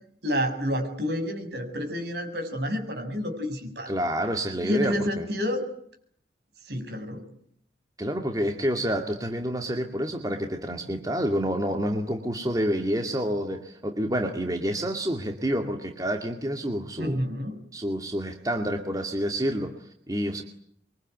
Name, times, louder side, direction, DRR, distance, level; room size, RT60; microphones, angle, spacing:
voice 1, 0.2-3.9 4.6-5.6 6.6-7.2 17.0-17.6, left 1 dB, 65° right, 6 dB, 7.2 m, -29 dB
voice 2, 3.9-5.3 8.0-17.2 17.7-20.4, equal, 20° right, 4 dB, 2.2 m, -28 dB
26.0 x 24.0 x 9.3 m, 0.68 s
head